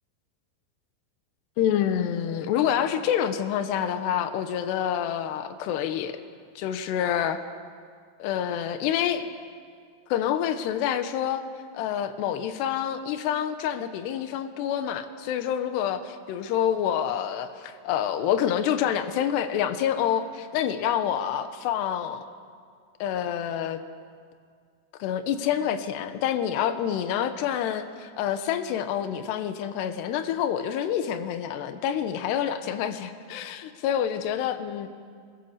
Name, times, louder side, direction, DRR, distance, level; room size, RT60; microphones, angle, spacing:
voice 1, 1.6-6.2 6.6-7.4 8.2-9.3 10.1-11.4 11.7-22.2 23.0-23.8 25.0-34.9, left 9 dB, 80° left, 9 dB, 3.2 m, -27 dB
24.5 x 23.5 x 7.3 m, 2.1 s
omnidirectional pair, 4.8 m